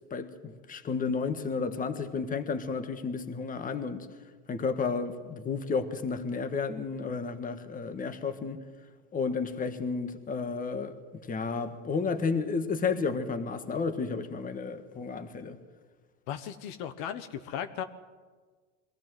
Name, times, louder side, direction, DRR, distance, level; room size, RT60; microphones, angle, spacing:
voice 1, 0.1-4.1 4.5-8.6 9.1-15.6, left 5 dB, 20° left, 1.5 m, -32 dB
voice 2, 16.3-17.8, left 9 dB, 55° left, 1.3 m, -36 dB
22.5 x 15.0 x 7.7 m
supercardioid pair, 130°, 38 cm